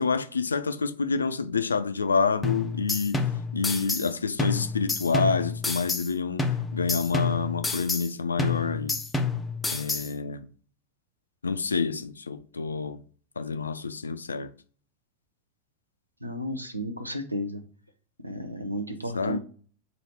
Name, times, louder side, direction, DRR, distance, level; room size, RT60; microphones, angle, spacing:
voice 1, 0.0-3.2 3.5-6.4 6.7-9.0 9.7-10.5 11.4-13.0 13.4-14.5 19.2-19.4, left 5 dB, 75° left, 0.3 m, -28 dB
sound 1, 2.4-4.1 4.4-6.1 6.4-8.1 8.4-10.1, left 4 dB, 10° left, 0.5 m, -29 dB
voice 2, 16.2-17.6 18.2-19.4, equal, 85° right, 0.6 m, -33 dB
3.0 x 2.7 x 4.4 m
figure-of-eight pair, 90°, 0 cm